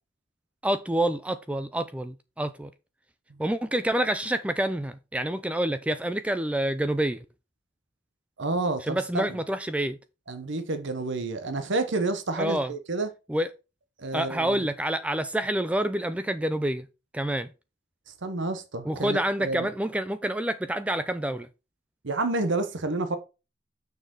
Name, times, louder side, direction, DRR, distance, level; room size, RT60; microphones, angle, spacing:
voice 1, 0.6-2.7 3.4-7.2 8.8-10.0 12.4-12.7 13.3-13.5 14.1-16.9 17.1-17.5 18.8-21.5, right 1 dB, 5° right, 0.4 m, -27 dB
voice 2, 8.4-9.2 10.3-13.1 14.0-14.6 18.2-19.7 22.0-23.2, right 2 dB, 65° right, 1.0 m, -29 dB
6.9 x 6.5 x 3.7 m
head